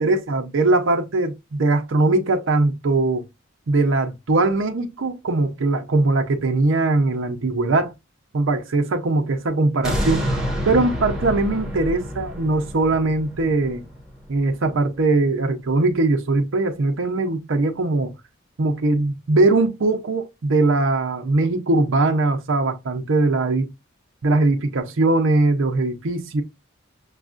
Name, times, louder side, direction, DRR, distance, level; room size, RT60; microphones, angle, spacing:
voice 1, 0.0-3.2 3.7-7.9 8.3-13.8 14.3-18.1 18.6-23.7 24.2-26.4, right 2 dB, 70° right, 0.6 m, -21 dB
sound 1, 9.8-14.9 15.4-15.5, equal, 5° right, 1.0 m, -28 dB
6.1 x 2.3 x 2.4 m
head